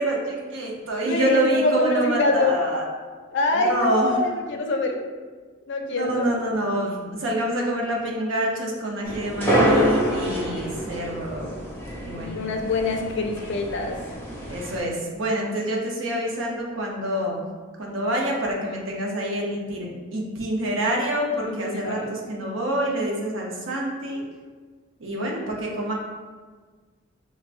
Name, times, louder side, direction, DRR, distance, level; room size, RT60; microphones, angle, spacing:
voice 1, 0.0-2.8 3.5-4.2 5.9-11.5 12.0-12.3 14.5-17.4 17.8-24.2 25.0-25.9, right 1 dB, 75° right, -1 dB, 0.7 m, -26 dB
voice 2, 1.0-2.6 3.3-5.0 5.7-6.3 12.2-14.0 21.5-22.2, left 2 dB, 60° left, 2 dB, 0.4 m, -25 dB
sound 1, 9.0-14.8, equal, 10° left, 0.7 m, -26 dB
4.7 x 2.1 x 2.5 m, 1.4 s
head